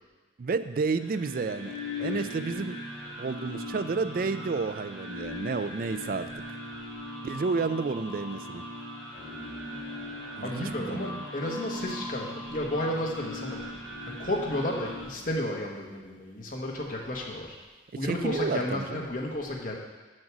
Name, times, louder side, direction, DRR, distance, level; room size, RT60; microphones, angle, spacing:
voice 1, 0.4-2.8 3.2-6.6 7.2-8.6 10.4-11.3 18.0-19.1, right 4 dB, 45° right, 11 dB, 0.3 m, -31 dB
sound 1, 0.8-15.0, left 1 dB, 20° right, 1.8 m, -39 dB
sound 2, 9.1-15.4, left 2 dB, 80° left, 1.2 m, -52 dB
voice 2, 10.4-13.6 14.0-17.6 17.9-19.8, left 1 dB, 45° left, -1 dB, 1.2 m, -32 dB
6.4 x 6.0 x 6.1 m, 1.2 s
head